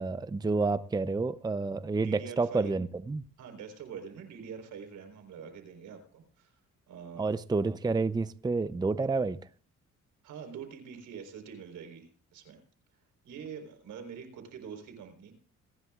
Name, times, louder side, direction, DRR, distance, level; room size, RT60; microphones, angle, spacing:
voice 1, 0.0-3.2 7.2-9.4, right 3 dB, 15° right, 0.6 m, -29 dB
voice 2, 1.9-2.7 3.4-6.6 6.9-7.3 10.2-12.6 13.2-15.3, right 7 dB, 80° right, 4.1 m, -45 dB
28.0 x 11.0 x 2.4 m
cardioid pair, 90°, 30 cm